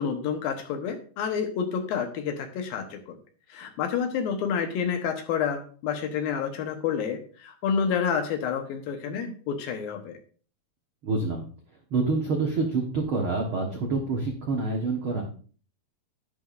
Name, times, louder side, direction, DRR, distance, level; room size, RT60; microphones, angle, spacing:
voice 1, 0.0-3.2 3.5-10.2, left 7 dB, 70° left, 6 dB, 2.7 m, -29 dB
voice 2, 11.0-11.5 11.9-15.2, right 3 dB, 80° right, 1 dB, 1.1 m, -27 dB
11.0 x 10.5 x 2.5 m, 0.42 s
omnidirectional pair, 4.6 m